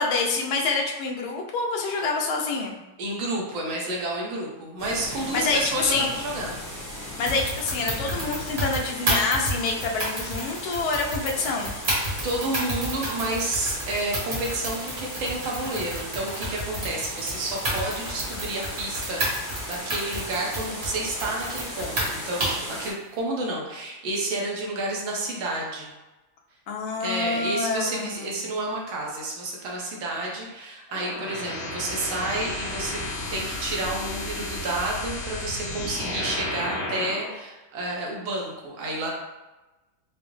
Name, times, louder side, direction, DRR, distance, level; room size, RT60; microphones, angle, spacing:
voice 1, 0.0-2.8 5.1-6.1 7.2-11.7 26.7-28.4, left 3 dB, 85° left, 1 dB, 1.4 m, -27 dB
voice 2, 3.0-6.6 12.2-19.3 19.7-25.9 27.0-33.0 33.3-39.1, right 2 dB, 75° right, -2 dB, 1.6 m, -30 dB
sound 1, 4.8-22.9, equal, 10° left, 0.9 m, -37 dB
sound 2, 7.3-22.7, right 1 dB, 40° right, 1.1 m, -31 dB
sound 3, 30.9-37.3, left 2 dB, 60° left, 0.8 m, -33 dB
4.9 x 2.0 x 3.0 m, 1.1 s
omnidirectional pair, 2.2 m